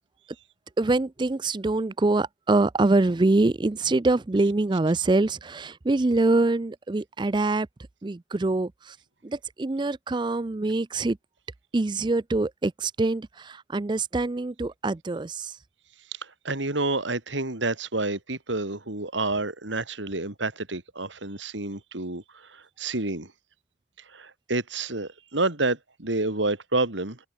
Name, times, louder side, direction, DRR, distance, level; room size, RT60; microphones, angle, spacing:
voice 1, 0.8-7.7 8.0-8.9 9.2-11.2 11.7-15.5, right 2 dB, 25° right, 0.4 m, -24 dB
voice 2, 16.2-23.3 24.1-27.2, right 2 dB, 85° right, 3.3 m, -29 dB
open air
head